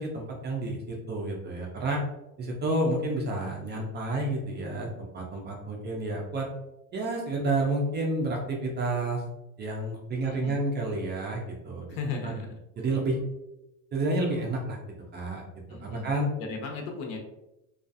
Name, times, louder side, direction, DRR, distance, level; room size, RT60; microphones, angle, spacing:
voice 1, 0.0-2.0 2.4-6.5 6.9-9.2 9.6-11.9 12.2-12.3 12.8-13.2 13.9-14.8 15.1-15.4 15.8-16.3, right 2 dB, 25° right, 0 dB, 0.3 m, -30 dB
voice 2, 10.2-10.6 11.9-12.6 15.7-17.2, left 4 dB, 75° left, 3 dB, 0.8 m, -36 dB
2.4 x 2.3 x 2.5 m, 0.92 s
cardioid pair, 130°, 42 cm